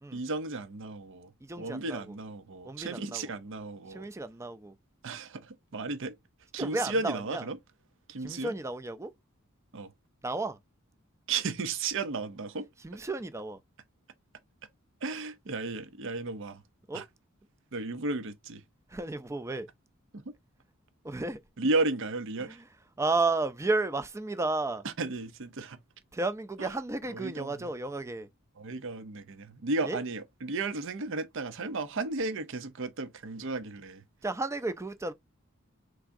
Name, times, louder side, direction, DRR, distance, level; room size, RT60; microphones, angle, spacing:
voice 1, 0.1-4.1 5.0-6.2 6.5-7.6 8.1-8.5 9.7-9.9 11.3-12.7 15.0-16.6 16.9-17.1 17.7-18.6 20.1-20.4 21.6-22.6 24.8-25.8 26.6-26.7 27.1-27.7 28.6-34.0, right 3 dB, 60° right, 0.6 m, -34 dB
voice 2, 1.4-2.0 2.6-3.3 3.9-4.7 6.6-7.4 8.2-9.1 10.2-10.6 12.8-13.6 16.9-17.1 18.9-19.7 21.0-21.4 22.4-22.6 23.0-24.8 26.1-28.3 29.8-30.0 34.2-35.1, right 3 dB, 15° right, 0.4 m, -32 dB
4.7 x 3.5 x 2.5 m
head